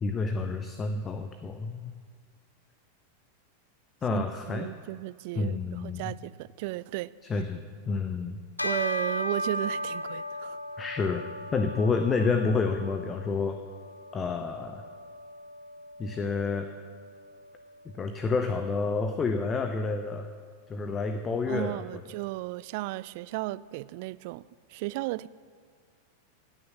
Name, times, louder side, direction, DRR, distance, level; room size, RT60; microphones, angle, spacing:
voice 1, 0.0-1.9 4.0-4.7 5.3-6.1 7.3-8.4 10.8-13.6 14.1-14.8 16.0-16.7 17.8-20.3 20.7-22.0, left 4 dB, 20° left, 0.8 m, -29 dB
voice 2, 4.1-7.1 8.6-10.6 21.5-24.4 24.7-25.3, right 19 dB, 50° right, 0.3 m, -34 dB
Bell, 8.6-18.3, equal, 85° left, 0.8 m, -37 dB
17.5 x 6.4 x 7.2 m
figure-of-eight pair, 90°, 0 cm